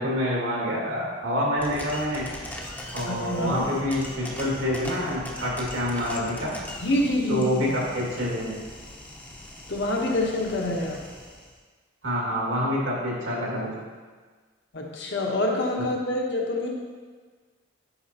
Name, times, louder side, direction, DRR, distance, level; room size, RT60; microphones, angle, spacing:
voice 1, 0.0-2.2 2.9-6.5 7.3-8.5 12.0-13.7, equal, 80° right, -4 dB, 2.1 m, -27 dB
sound 1, 1.6-11.5, left 1 dB, 10° left, 0.7 m, -40 dB
voice 2, 3.0-3.7 6.8-7.5 9.7-11.0 14.7-16.7, left 1 dB, 60° left, -1 dB, 1.0 m, -26 dB
9.9 x 5.0 x 2.9 m, 1.4 s
head